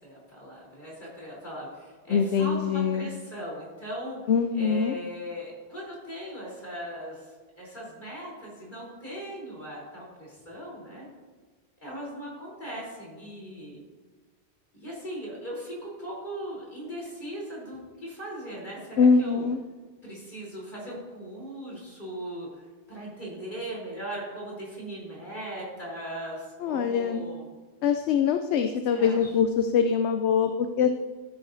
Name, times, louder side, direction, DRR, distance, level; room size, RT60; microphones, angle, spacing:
voice 1, 0.0-4.2 4.5-11.1 11.8-13.8 14.7-19.4 20.0-22.5 22.9-27.5 28.9-29.3, equal, 45° left, -5 dB, 3.8 m, -39 dB
voice 2, 2.1-3.1 4.3-4.9 19.0-19.6 26.6-27.2 27.8-30.9, left 6 dB, 80° left, 7 dB, 0.8 m, -23 dB
14.0 x 8.9 x 2.6 m, 1.3 s
omnidirectional pair, 1.1 m